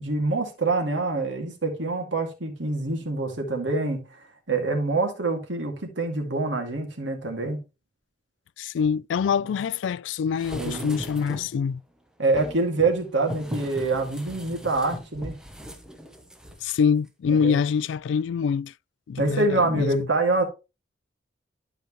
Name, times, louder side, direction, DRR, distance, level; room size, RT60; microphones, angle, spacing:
voice 1, 0.0-4.2 4.5-7.6 10.6-11.0 12.2-15.4 17.3-17.6 19.2-20.4, right 3 dB, 75° right, 2.2 m, -26 dB
voice 2, 8.6-11.8 16.6-18.7 19.1-20.1, left 6 dB, 75° left, 0.3 m, -25 dB
sound 1, 10.3-11.6 12.3-16.8 17.1-17.2, equal, 5° right, 1.0 m, -38 dB
12.0 x 5.0 x 3.0 m
head